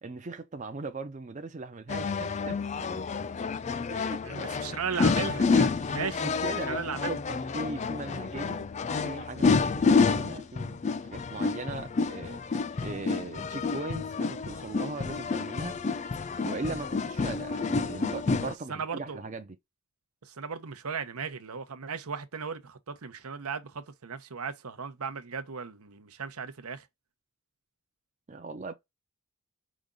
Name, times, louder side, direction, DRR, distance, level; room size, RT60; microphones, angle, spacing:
voice 1, 0.0-3.0 3.9-4.5 6.2-8.6 9.0-12.4 12.7-15.8 16.4-19.6 28.3-28.7, right 3 dB, 35° right, 0.5 m, -39 dB
sound 1, 1.9-18.5, left 4 dB, 30° left, 0.3 m, -29 dB
voice 2, 4.2-7.2 18.7-19.2 20.2-26.9, right 6 dB, 80° right, 0.8 m, -36 dB
5.1 x 2.4 x 3.7 m
head